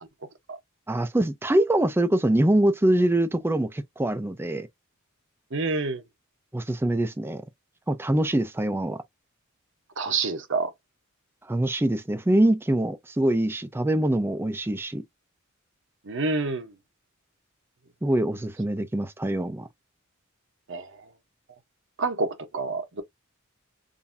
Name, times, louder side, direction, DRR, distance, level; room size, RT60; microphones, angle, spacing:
voice 1, 0.9-4.7 6.5-7.4 7.9-9.0 11.5-15.0 18.0-19.7, right 1 dB, 10° right, 0.4 m, -24 dB
voice 2, 5.5-6.0 10.0-10.7 16.0-16.7 20.7-20.9 22.0-23.0, right 3 dB, 60° right, 0.9 m, -27 dB
3.8 x 2.6 x 2.6 m
head